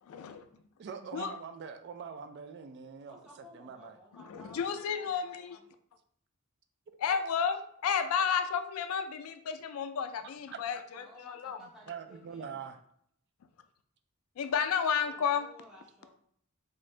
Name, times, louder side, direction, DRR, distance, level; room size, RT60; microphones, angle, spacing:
voice 1, 0.0-0.4 1.1-1.3 4.1-5.6 7.0-11.6 14.4-15.5, left 7 dB, 80° left, 9 dB, 0.3 m, -32 dB
voice 2, 0.8-4.0 11.9-12.8, right 6 dB, 55° right, 7 dB, 0.3 m, -43 dB
voice 3, 3.1-5.6 10.9-12.7 15.0-16.2, left 1 dB, 5° right, -6 dB, 1.0 m, -56 dB
3.7 x 2.5 x 3.2 m, 0.66 s
head